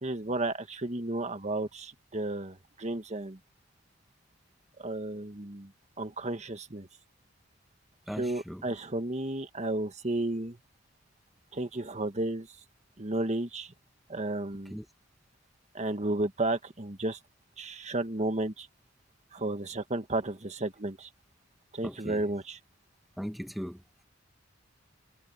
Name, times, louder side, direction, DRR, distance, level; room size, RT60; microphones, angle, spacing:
voice 1, 0.0-3.4 4.8-5.7 6.0-6.9 8.2-10.6 11.5-12.5 13.0-13.7 14.1-14.8 15.7-17.2 17.6-18.7 19.3-21.1 21.7-22.6, right 2 dB, 35° right, 1.6 m, -33 dB
voice 2, 8.1-8.8 14.7-14.8 21.8-22.2 23.2-23.8, equal, ahead, 1.7 m, -38 dB
head